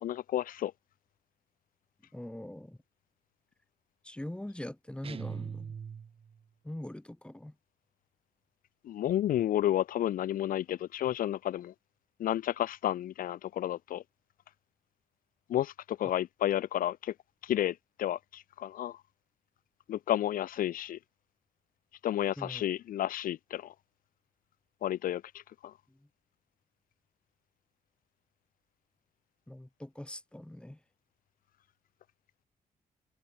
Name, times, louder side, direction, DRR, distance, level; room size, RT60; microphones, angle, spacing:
voice 1, 0.0-0.7 8.8-11.7 12.2-14.0 15.5-17.1 17.4-19.0 19.9-21.0 22.0-23.7 24.8-25.2 25.6-25.7, left 12 dB, 80° left, 0.9 m, -31 dB
voice 2, 2.1-2.8 4.0-5.8 6.6-7.5 22.4-22.6 25.9-26.1 29.5-30.8, left 1 dB, 5° left, 6.2 m, -42 dB
sound 1, 5.0-6.4, right 7 dB, 40° right, 0.8 m, -41 dB
cardioid pair, 105°, 14 cm